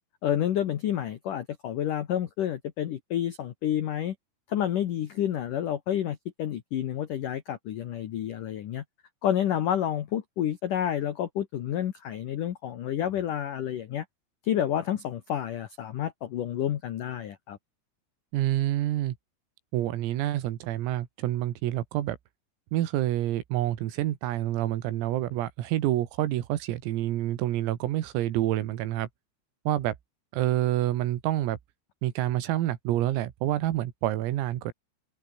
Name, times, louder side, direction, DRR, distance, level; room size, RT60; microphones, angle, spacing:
voice 1, 0.2-4.2 4.5-8.8 9.2-14.0 14.4-17.6, left 10 dB, 85° left, 1.8 m, -29 dB
voice 2, 18.3-19.2 19.7-22.2 22.7-29.1 29.7-29.9 30.3-31.6 32.0-34.7, right 13 dB, 90° right, 4.5 m, -28 dB
omnidirectional pair, 5.9 m